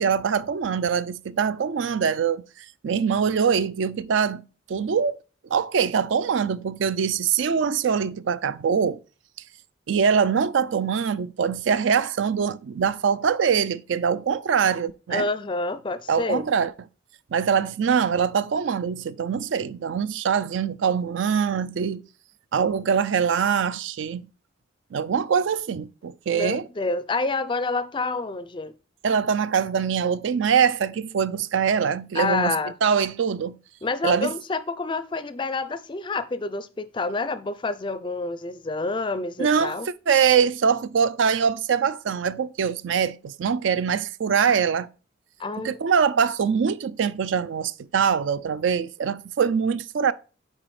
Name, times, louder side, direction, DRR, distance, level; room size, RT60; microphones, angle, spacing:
voice 1, 0.0-2.4 2.8-4.4 4.7-5.2 5.5-9.0 9.9-15.3 16.1-16.7 17.3-22.0 22.5-24.2 24.9-26.7 29.0-32.5 32.8-33.6 34.0-34.3 39.4-39.8 40.1-44.9 45.6-50.1, right 6 dB, 70° right, 0.4 m, -23 dB
voice 2, 15.1-16.4 26.3-28.7 32.1-32.7 33.8-39.9 45.4-45.8, left 3 dB, 25° left, 0.4 m, -28 dB
9.0 x 3.8 x 3.1 m
head